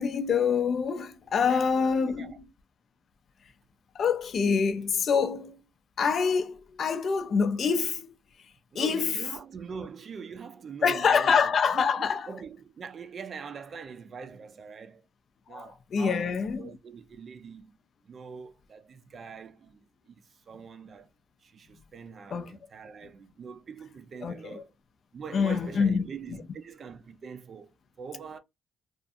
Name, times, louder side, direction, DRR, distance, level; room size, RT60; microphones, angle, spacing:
voice 1, 0.0-2.3 4.0-5.6 6.0-8.1 8.8-9.2 10.8-12.3 15.5-16.6 22.3-22.6 24.2-24.6 25.3-26.0, left 6 dB, 55° left, 0.4 m, -26 dB
voice 2, 1.4-2.4 8.7-15.0 15.5-17.7 18.0-21.1 21.4-24.7 25.1-28.4, right 6 dB, 50° right, 0.4 m, -43 dB
2.5 x 2.4 x 2.5 m
cardioid pair, 90°, 0 cm